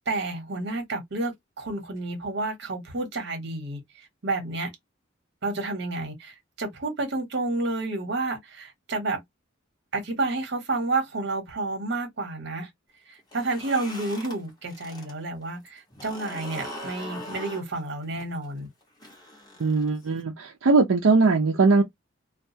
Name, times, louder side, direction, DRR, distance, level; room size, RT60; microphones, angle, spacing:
voice 1, 0.1-3.8 4.2-4.7 5.4-9.2 9.9-12.7 13.3-18.7, right 2 dB, 60° right, 1.0 m, -30 dB
sound 1, 13.2-15.1 15.4-20.2, left 1 dB, 20° left, 1.0 m, -41 dB
voice 2, 19.6-21.8, right 3 dB, 75° right, 0.5 m, -20 dB
2.3 x 2.2 x 2.6 m
head